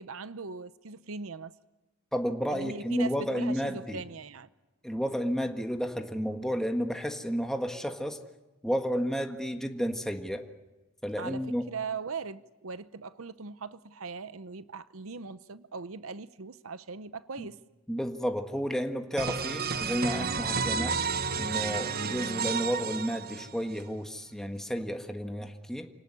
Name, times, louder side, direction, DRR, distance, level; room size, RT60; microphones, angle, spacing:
voice 1, 0.0-1.6 2.5-4.5 11.2-17.6, right 5 dB, 80° right, 0.8 m, -40 dB
voice 2, 2.1-4.0 4.8-8.2 8.6-10.5 11.0-11.6 17.4-17.5 17.9-21.0 21.4-25.9, equal, ahead, 1.7 m, -31 dB
sound 1, 19.2-23.8, right 5 dB, 50° right, 1.2 m, -31 dB
28.5 x 19.0 x 9.8 m
head